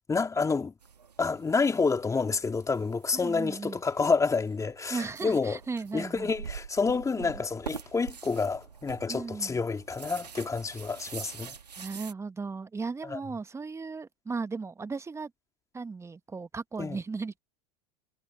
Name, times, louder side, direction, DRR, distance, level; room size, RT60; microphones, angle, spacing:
voice 1, 0.1-0.7 1.2-5.6 5.9-11.6 13.0-13.2 16.8-17.0, left 4 dB, 15° left, 2.2 m, -28 dB
sound 1, 0.8-12.1, right 6 dB, 85° right, 1.9 m, -46 dB
voice 2, 3.1-3.8 4.9-6.3 7.2-7.3 9.1-9.6 11.8-15.3 15.7-17.4, right 4 dB, 15° right, 1.4 m, -36 dB
hypercardioid pair, 90°, 20 cm